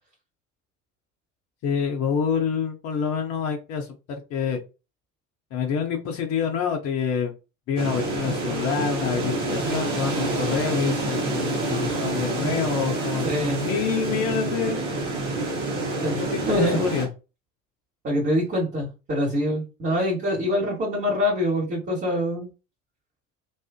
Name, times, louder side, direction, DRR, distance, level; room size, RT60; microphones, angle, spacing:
voice 1, 1.6-4.6 5.5-7.3 7.7-13.3 13.5-14.8 16.2-17.1, left 6 dB, 40° left, 3 dB, 0.6 m, -27 dB
sound 1, 7.8-17.1, right 2 dB, 70° right, 0.9 m, -27 dB
voice 2, 13.2-13.7 16.0-16.8 18.0-22.5, equal, 30° right, -4 dB, 1.1 m, -25 dB
2.4 x 2.4 x 2.3 m, 0.30 s
figure-of-eight pair, 60°, 38 cm